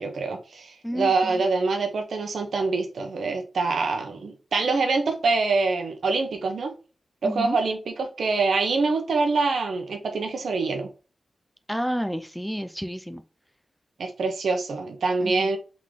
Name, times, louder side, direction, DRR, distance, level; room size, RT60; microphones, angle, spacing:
voice 1, 0.0-6.7 7.2-10.9 14.0-15.6, right 3 dB, 90° right, 0.9 m, -25 dB
voice 2, 0.8-1.4 7.2-7.6 11.7-13.2 15.2-15.5, equal, ahead, 0.4 m, -30 dB
3.7 x 3.7 x 3.2 m
wide cardioid pair, 140°, 0 cm